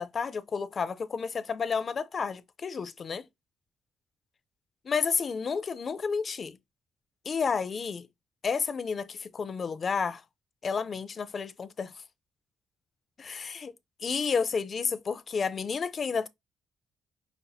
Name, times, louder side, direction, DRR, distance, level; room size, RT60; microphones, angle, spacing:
voice 1, 0.0-3.3 4.9-6.6 7.3-8.1 8.4-10.2 10.6-11.9 13.2-13.7 14.0-16.3, left 5 dB, 45° left, 0.4 m, -31 dB
5.2 x 2.7 x 2.3 m
cardioid pair, 90°, 0 cm